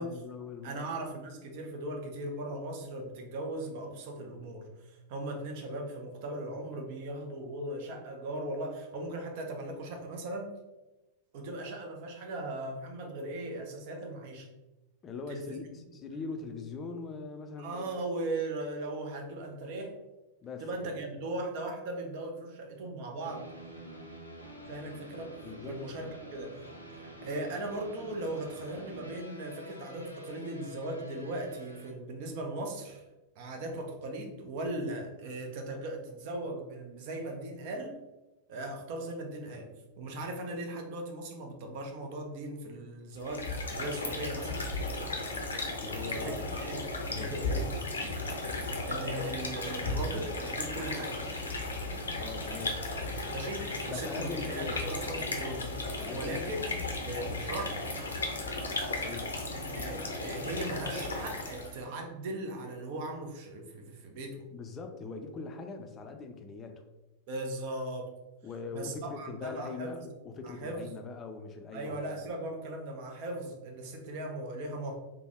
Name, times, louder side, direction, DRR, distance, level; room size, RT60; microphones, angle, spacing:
voice 1, 0.0-0.9 15.0-17.9 20.4-21.0 25.4-26.1 45.8-46.5 47.1-47.7 48.0-48.2 52.2-52.9 53.9-54.8 55.8-56.6 59.0-59.5 64.5-66.8 68.4-72.2, left 4 dB, 25° left, 5 dB, 0.4 m, -42 dB
voice 2, 0.6-10.6 11.3-14.5 15.3-15.6 17.6-20.0 20.6-23.5 24.7-25.3 25.6-26.6 26.9-33.0 33.4-38.0 38.5-39.7 40.0-44.5 46.1-47.7 48.6-51.2 53.3-55.8 56.1-57.8 59.5-64.4 67.3-68.1 68.7-70.1 70.4-70.9 71.7-75.0, right 1 dB, 50° right, 3 dB, 0.6 m, -38 dB
sound 1, 23.2-31.9, equal, 90° right, 0.6 m, -47 dB
sound 2, 43.2-61.8, left 2 dB, 75° left, 0.6 m, -35 dB
3.4 x 2.2 x 3.4 m, 1.0 s
figure-of-eight pair, 90°, 0 cm